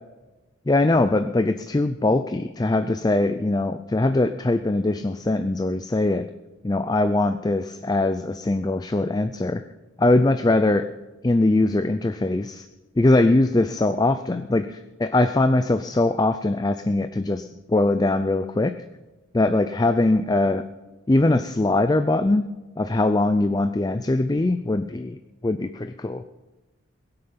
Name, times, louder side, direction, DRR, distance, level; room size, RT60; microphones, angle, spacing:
voice 1, 0.7-6.3 6.6-9.6 10.0-10.8 11.2-12.7 13.0-18.7 19.3-20.6 21.1-22.4 22.8-25.2 25.4-26.2, left 2 dB, 20° left, 10 dB, 0.4 m, -21 dB
22.0 x 7.8 x 5.7 m, 1.1 s
head